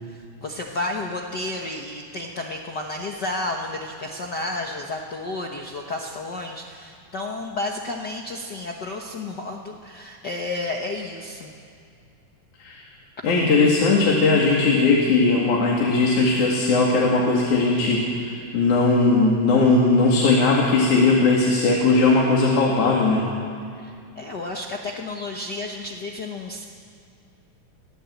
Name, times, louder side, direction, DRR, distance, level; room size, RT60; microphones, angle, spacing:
voice 1, 0.1-11.5 23.8-26.6, left 2 dB, 80° left, 1 dB, 0.9 m, -31 dB
voice 2, 13.2-23.3, left 3 dB, 60° left, -3 dB, 3.6 m, -19 dB
24.0 x 16.5 x 8.2 m, 2.4 s
omnidirectional pair, 4.0 m